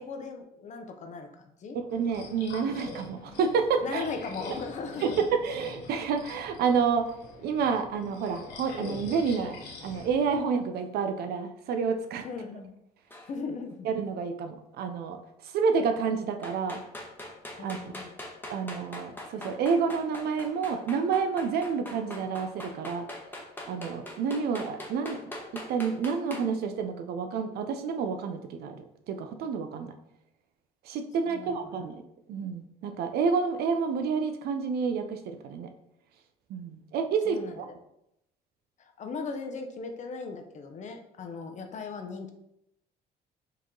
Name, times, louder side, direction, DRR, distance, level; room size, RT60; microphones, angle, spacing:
voice 1, 0.0-1.8 3.8-5.2 12.2-12.7 13.3-13.9 17.6-18.2 31.3-31.8 37.3-37.6 38.8-42.3, left 4 dB, 45° left, 5 dB, 0.7 m, -38 dB
voice 2, 1.7-4.0 5.0-7.2 7.4-12.3 13.8-15.2 15.4-16.8 17.6-17.8 18.5-23.1 23.7-25.2 25.5-29.9 30.8-32.0 32.3-35.7 36.5-37.7, right 5 dB, 70° right, 7 dB, 0.5 m, -29 dB
sound 1, 1.9-10.4, left 2 dB, 75° left, 1.2 m, -44 dB
sound 2, 13.1-13.3 16.4-26.5, left 1 dB, 10° left, 0.9 m, -41 dB
4.7 x 3.0 x 3.7 m, 0.81 s
cardioid pair, 110°, 17 cm